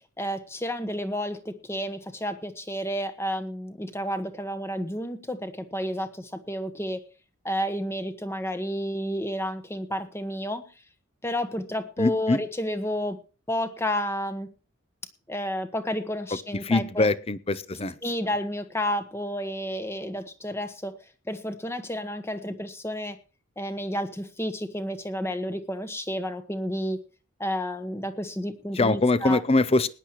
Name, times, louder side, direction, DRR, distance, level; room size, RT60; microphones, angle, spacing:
voice 1, 0.2-6.1 6.5-7.0 7.4-10.6 11.2-13.2 13.5-14.5 15.3-17.1 18.0-20.9 21.3-23.1 23.6-27.0 27.4-29.4, equal, 10° left, 10 dB, 1.2 m, -31 dB
voice 2, 12.0-12.4 16.6-18.0 28.7-29.9, left 2 dB, 30° left, 17 dB, 0.6 m, -23 dB
20.5 x 10.0 x 3.0 m, 0.33 s
head